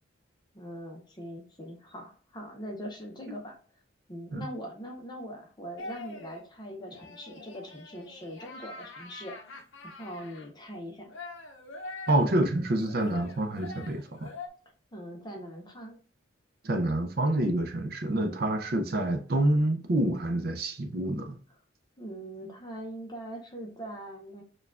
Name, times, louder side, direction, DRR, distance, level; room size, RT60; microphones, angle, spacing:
voice 1, 0.5-3.6 4.1-9.4 9.8-11.1 14.9-16.0 22.0-24.4, equal, 20° left, 1 dB, 0.6 m, -41 dB
sound 1, 5.8-6.4 6.9-10.5 11.1-14.5, left 3 dB, 75° left, 0.6 m, -44 dB
voice 2, 12.1-14.3 16.6-21.4, right 1 dB, 50° right, 5 dB, 0.5 m, -27 dB
6.7 x 2.3 x 2.4 m, 0.42 s
head